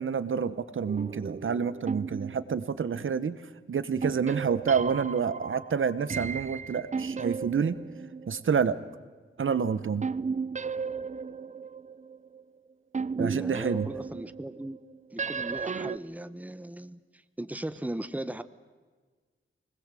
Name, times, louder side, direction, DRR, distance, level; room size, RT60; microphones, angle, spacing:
voice 1, 0.0-3.4 3.7-7.8 8.3-8.8 9.4-10.1 13.2-13.9, right 6 dB, 70° right, 15 dB, 1.0 m, -28 dB
sound 1, 0.9-3.3 4.0-8.8 10.0-12.4 12.9-16.0, right 5 dB, 35° right, 0.6 m, -35 dB
voice 2, 13.2-14.8 15.1-18.4, right 1 dB, 5° right, 13 dB, 0.9 m, -37 dB
25.0 x 20.0 x 7.6 m, 1.4 s
wide cardioid pair, 80°, 21 cm